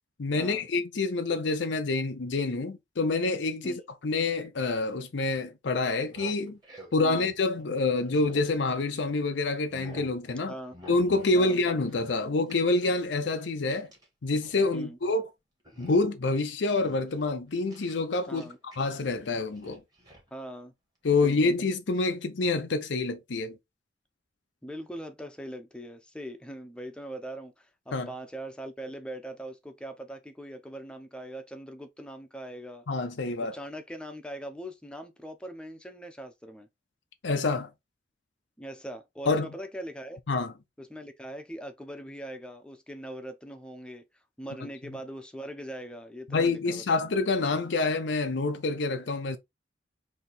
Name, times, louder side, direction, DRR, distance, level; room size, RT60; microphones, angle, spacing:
voice 1, 0.2-6.6 6.9-10.5 10.9-13.9 14.2-15.3 15.8-18.5 18.8-19.8 21.0-23.6 27.9-28.1 32.9-33.5 37.2-37.7 39.3-39.5 40.3-40.5 46.3-49.4, left 3 dB, 85° left, 0.6 m, -27 dB
sound 1, 6.1-9.1 9.5-10.2 10.7-11.4 11.6-14.1 14.3-14.7 15.0-15.3 15.7-16.3 16.7-18.8 19.0-20.3 21.1-21.3, left 1 dB, 20° right, 1.8 m, -49 dB
voice 2, 7.0-7.3 10.5-10.7 11.3-11.6 14.7-15.0 18.3-18.6 20.3-20.7 21.2-21.6 24.6-32.8 33.4-36.7 38.6-40.2 40.8-44.0 44.4-47.0, right 1 dB, 5° left, 0.7 m, -41 dB
4.0 x 2.8 x 4.2 m
head